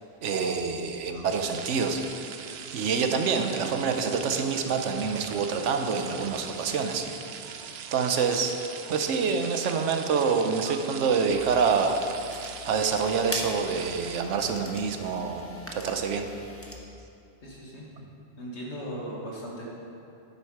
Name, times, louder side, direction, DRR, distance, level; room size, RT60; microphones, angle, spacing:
voice 1, 0.2-2.0 2.7-7.0 7.9-8.5 8.9-12.0 12.6-15.4 15.7-16.3, right 5 dB, 90° right, 6 dB, 1.1 m, -26 dB
sound 1, 1.3-14.2, right 7 dB, 65° right, 0.8 m, -41 dB
sound 2, 11.3-16.8, left 2 dB, 15° left, 0.9 m, -42 dB
voice 2, 17.4-18.1 18.4-19.6, equal, 70° left, -3 dB, 2.0 m, -38 dB
9.6 x 7.9 x 4.8 m, 2.7 s
omnidirectional pair, 1.2 m